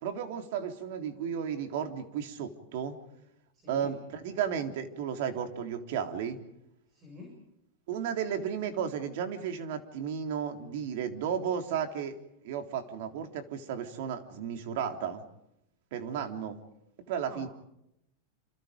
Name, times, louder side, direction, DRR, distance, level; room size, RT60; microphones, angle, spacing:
voice 1, 0.0-3.0 3.7-6.4 7.9-12.2 12.4-15.2 15.9-16.6 17.1-17.5, right 8 dB, 55° right, 6 dB, 3.6 m, -34 dB
voice 2, 3.5-3.9 6.9-7.3 17.2-17.5, left 3 dB, 25° right, 2 dB, 7.1 m, -48 dB
28.5 x 28.0 x 5.3 m, 0.82 s
supercardioid pair, 160°, 0 cm